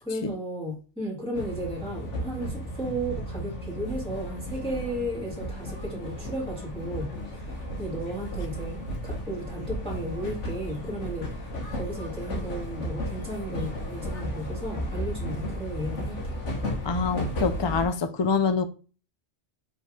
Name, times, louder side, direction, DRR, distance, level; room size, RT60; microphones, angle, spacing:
voice 1, 0.0-16.4, right 1 dB, 5° left, 2.0 m, -34 dB
sound 1, 1.3-17.9, equal, 90° left, 1.5 m, -34 dB
voice 2, 16.8-18.6, left 5 dB, 35° left, 0.4 m, -25 dB
5.3 x 3.7 x 5.0 m
omnidirectional pair, 1.2 m